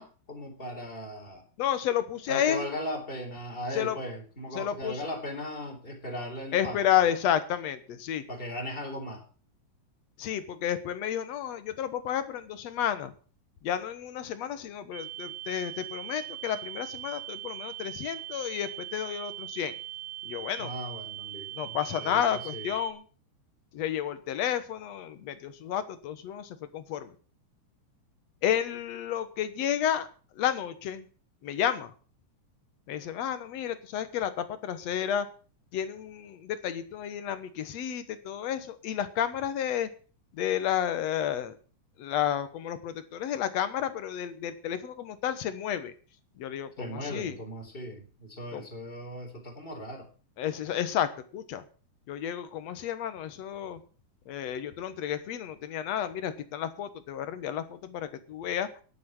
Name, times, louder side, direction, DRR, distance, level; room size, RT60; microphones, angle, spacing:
voice 1, 0.0-1.4 2.3-6.9 8.3-9.2 20.6-22.7 46.8-50.1, equal, 15° left, 2 dB, 3.9 m, -38 dB
voice 2, 1.6-2.6 3.7-4.0 4.6-5.0 6.5-8.2 10.2-13.1 13.6-19.7 20.3-20.7 21.5-23.0 23.7-27.1 28.4-30.1 30.4-31.1 31.4-31.9 32.9-35.3 35.7-39.9 40.3-41.6 42.0-45.9 46.4-47.4 48.5-48.7 50.4-51.6 52.1-53.8 54.3-58.7, left 10 dB, 65° left, 12 dB, 2.3 m, -31 dB
sound 1, 14.9-22.9, right 14 dB, 50° right, 1.8 m, -40 dB
10.5 x 9.4 x 7.8 m, 0.39 s
omnidirectional pair, 3.5 m